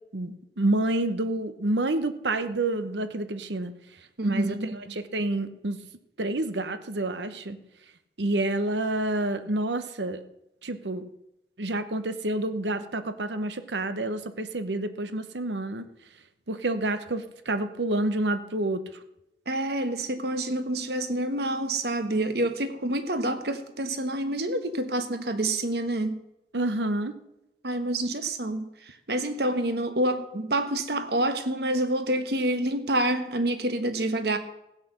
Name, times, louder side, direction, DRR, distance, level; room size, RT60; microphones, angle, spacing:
voice 1, 0.1-3.7 4.2-5.8 6.2-7.6 8.2-10.2 10.6-11.1 11.6-15.8 16.5-18.8 26.5-27.1, right 2 dB, 85° right, 11 dB, 1.0 m, -28 dB
voice 2, 4.2-4.7 19.5-26.2 27.6-34.4, right 1 dB, 65° right, 9 dB, 1.3 m, -27 dB
15.5 x 8.4 x 6.7 m, 0.88 s
head